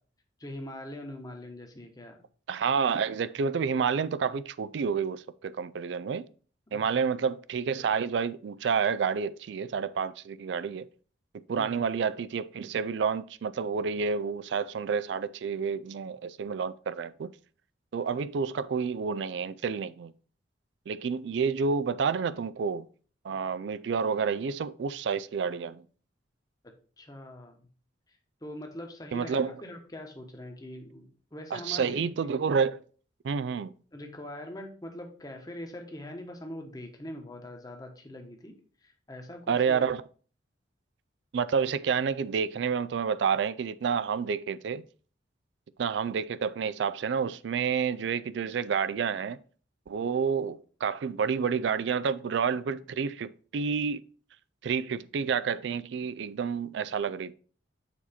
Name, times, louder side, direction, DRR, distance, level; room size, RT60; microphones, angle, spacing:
voice 1, 0.4-2.2 6.7-7.0 11.6-11.8 27.0-27.7 28.1-32.1 33.9-38.5 38.8-39.9, left 1 dB, 20° left, 1.1 m, -43 dB
voice 2, 2.5-6.3 6.7-10.9 11.5-17.3 17.9-20.1 20.9-22.9 23.2-25.8 29.1-29.5 31.5-32.8 33.2-33.7 39.5-40.0 41.3-44.8 45.8-49.4 49.9-54.0 54.6-57.3, right 6 dB, 70° right, 0.3 m, -29 dB
7.0 x 4.2 x 4.2 m
head